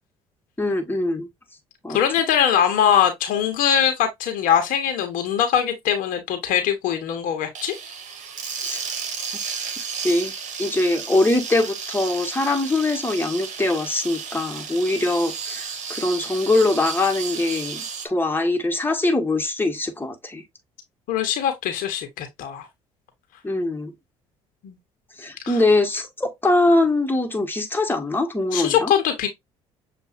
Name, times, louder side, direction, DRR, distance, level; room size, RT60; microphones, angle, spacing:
voice 1, 0.6-1.3 1.8-2.0 8.6-8.8 10.0-10.3 10.6-20.4 23.4-23.9 25.2-28.9, left 2 dB, 15° left, 1.5 m, -22 dB
voice 2, 1.9-7.7 21.1-22.7 24.6-24.8 25.5-25.6 28.5-29.3, left 9 dB, 70° left, 1.1 m, -22 dB
sound 1, 7.5-18.1, right 6 dB, 55° right, 1.2 m, -33 dB
6.6 x 2.5 x 2.6 m
hypercardioid pair, 60°, 15 cm